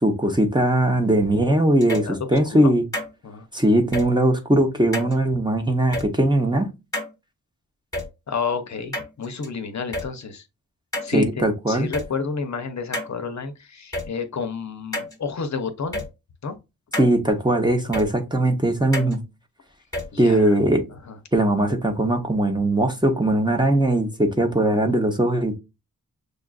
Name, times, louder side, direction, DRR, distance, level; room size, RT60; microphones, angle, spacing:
voice 1, 0.0-2.8 3.5-6.7 11.1-11.9 17.0-19.2 20.2-20.8 21.3-25.6, right 1 dB, 15° right, 0.7 m, -20 dB
sound 1, 1.8-2.1 2.9-3.1 3.9-4.1 4.9-5.1 5.9-6.1 6.9-7.1 7.9-8.1 8.9-9.5 9.9-10.1 10.9-11.1 11.9-12.1 12.9-13.1 13.9-14.1 14.9-15.1 15.9-16.1 16.9-17.1 17.9-18.1 18.9-19.1 19.9-20.1, left 1 dB, 10° left, 1.3 m, -28 dB
voice 2, 2.0-2.7 3.2-3.5 8.3-10.4 11.0-16.0 16.4-16.5 20.1-20.6 21.1-21.2, left 5 dB, 50° left, 0.7 m, -30 dB
6.5 x 2.4 x 2.3 m
wide cardioid pair, 125°, 35 cm